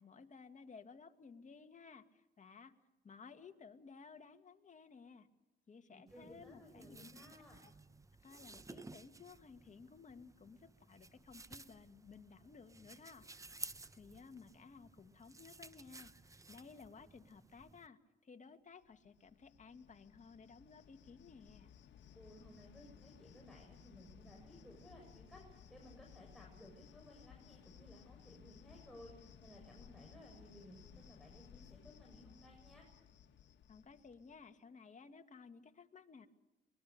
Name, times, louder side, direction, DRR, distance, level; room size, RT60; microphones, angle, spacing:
voice 1, 0.0-2.7 3.0-5.3 5.7-7.2 7.6-7.7 8.2-13.3 13.9-21.7 33.7-36.3, left 5 dB, 40° left, 7 dB, 2.1 m, -57 dB
voice 2, 5.9-7.6 22.2-32.9, equal, ahead, -2 dB, 6.9 m, -58 dB
sound 1, 6.1-17.9, right 3 dB, 15° right, 0.9 m, -55 dB
Cricket, 18.8-34.5, left 8 dB, 65° left, 1.9 m, -60 dB
24.0 x 21.5 x 6.8 m, 1.0 s
cardioid pair, 90°, 20 cm